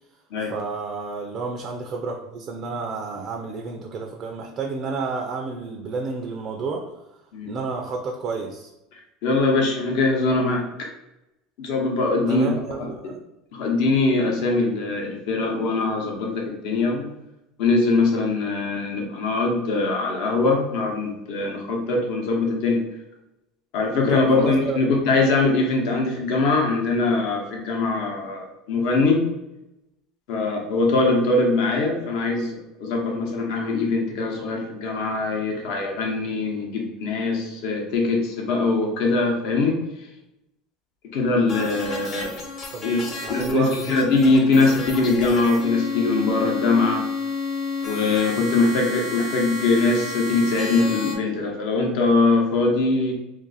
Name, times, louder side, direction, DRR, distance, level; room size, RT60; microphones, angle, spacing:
voice 1, 0.5-7.0 7.4-8.7 12.3-13.2 24.1-24.8 42.7-42.9 43.2-44.0, right 4 dB, 45° right, 2 dB, 0.4 m, -30 dB
voice 2, 9.2-10.9 11.6-12.5 12.8-13.1 13.5-17.1 17.6-22.8 23.7-29.2 30.3-39.8 41.1-42.3 42.8-47.0 47.8-53.1, left 3 dB, 70° left, 0 dB, 0.8 m, -22 dB
sound 1, 41.5-51.2, left 3 dB, 45° left, 0.9 m, -31 dB
2.5 x 2.4 x 3.9 m, 0.91 s
supercardioid pair, 110°, 0 cm